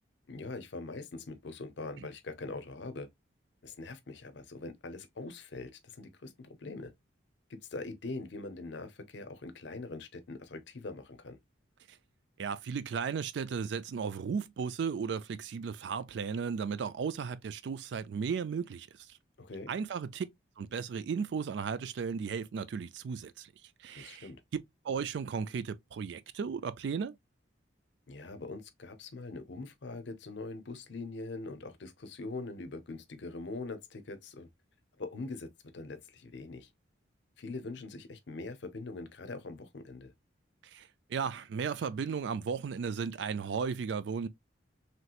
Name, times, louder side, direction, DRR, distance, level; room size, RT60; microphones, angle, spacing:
voice 1, 0.3-3.1 3.6-6.9 7.5-11.4 19.4-19.7 23.9-24.4 28.1-34.5 35.0-36.7 37.4-40.1, left 3 dB, 60° left, 0.6 m, -42 dB
voice 2, 12.4-18.9 19.7-20.3 20.6-23.5 23.8-27.1 40.7-44.3, right 6 dB, 60° right, 0.3 m, -35 dB
3.1 x 2.9 x 2.3 m
head